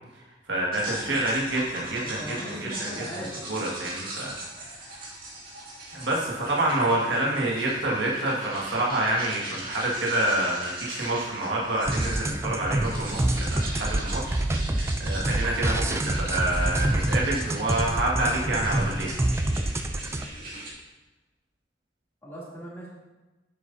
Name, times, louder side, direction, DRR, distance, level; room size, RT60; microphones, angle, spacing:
voice 1, 0.5-4.3 4.7-5.1 5.9-19.1, right 1 dB, 75° right, -4 dB, 1.8 m, -28 dB
sound 1, 0.7-20.7, right 2 dB, 50° right, 2.4 m, -40 dB
voice 2, 2.0-3.6 7.2-7.4 22.2-22.9, equal, 15° left, -7 dB, 2.7 m, -39 dB
sound 2, 11.9-20.3, right 1 dB, 15° right, 0.3 m, -27 dB
9.7 x 7.7 x 2.7 m, 1.1 s
head